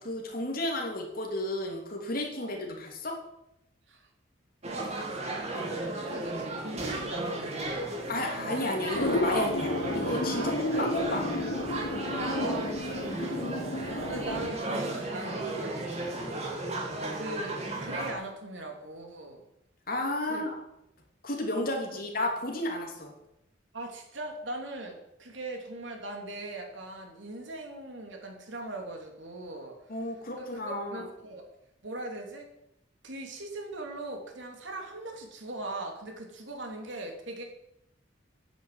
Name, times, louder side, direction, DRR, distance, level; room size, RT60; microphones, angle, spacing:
voice 1, 0.0-3.2 8.1-11.2 19.9-20.6 21.2-23.1 29.9-31.1, left 1 dB, 50° left, 1 dB, 3.1 m, -32 dB
sound 1, 4.6-18.1, right 2 dB, 35° right, 2.7 m, -34 dB
voice 2, 5.8-7.9 8.5-8.6 10.4-10.9 12.2-12.9 14.0-16.5 17.1-19.4 20.2-20.4 21.9-22.0 23.7-29.8 30.4-31.5 31.8-32.5 33.0-37.4, right 2 dB, 75° right, 2 dB, 3.1 m, -40 dB
sound 2, 8.9-14.5, left 2 dB, 70° left, 1.1 m, -32 dB
10.5 x 8.7 x 9.4 m, 0.83 s
head